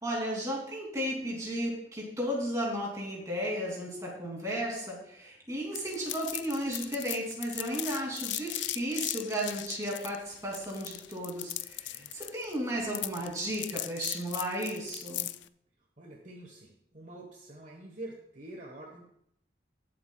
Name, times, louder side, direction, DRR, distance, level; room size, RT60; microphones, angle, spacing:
voice 1, 0.0-15.3, equal, 15° right, -2 dB, 2.8 m, -34 dB
sound 1, 5.7-15.5, left 15 dB, 75° left, 0.4 m, -38 dB
voice 2, 16.0-19.0, right 1 dB, 40° right, 0 dB, 1.3 m, -46 dB
20.0 x 7.7 x 2.3 m, 0.72 s
head